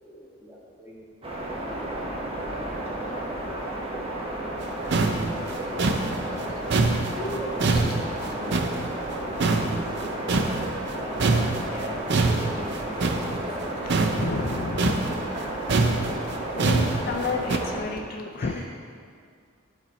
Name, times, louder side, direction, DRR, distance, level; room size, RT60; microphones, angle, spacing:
voice 1, 0.0-2.7 6.2-6.4 7.2-7.9 8.3-8.5 9.0-10.1 10.4-10.6 10.9-14.3 16.5-16.8 18.3-18.6, equal, 10° right, -6 dB, 1.5 m, -40 dB
sound 1, 1.2-17.8, right 1 dB, 30° right, 1.0 m, -32 dB
sound 2, 4.6-4.7 4.9-9.1 9.4-10.9 11.2-17.6, right 3 dB, 55° right, 0.5 m, -25 dB
voice 2, 6.1-7.1 7.7-8.0 14.1-15.1 16.5-18.6, left 3 dB, 45° left, 3 dB, 0.4 m, -32 dB
11.5 x 4.4 x 4.1 m, 2.2 s
head